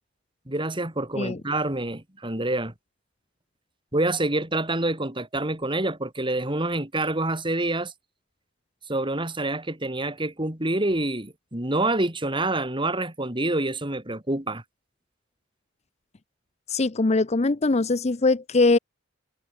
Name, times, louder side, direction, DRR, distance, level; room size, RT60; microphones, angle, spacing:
voice 1, 0.5-2.7 3.9-7.9 8.9-14.6, right 2 dB, 25° right, 3.7 m, -27 dB
voice 2, 16.7-18.8, left 3 dB, 35° left, 0.7 m, -21 dB
head